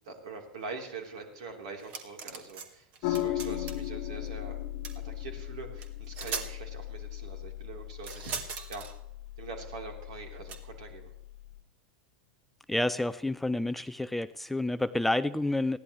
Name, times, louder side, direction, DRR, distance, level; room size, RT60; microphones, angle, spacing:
voice 1, 0.0-4.6 5.0-8.9 9.4-11.1, right 4 dB, 60° right, 3 dB, 3.7 m, -43 dB
sound 1, 1.8-2.7 2.9-3.9 4.8-5.0 5.8-5.9 6.1-6.5 8.0-8.9 10.5-10.6, right 5 dB, 40° right, 2.2 m, -39 dB
sound 2, 3.0-11.6, left 13 dB, 50° left, 1.3 m, -37 dB
voice 2, 12.7-15.8, left 2 dB, 5° left, 14 dB, 0.5 m, -29 dB
21.0 x 15.5 x 3.2 m, 0.79 s
figure-of-eight pair, 85°, 4 cm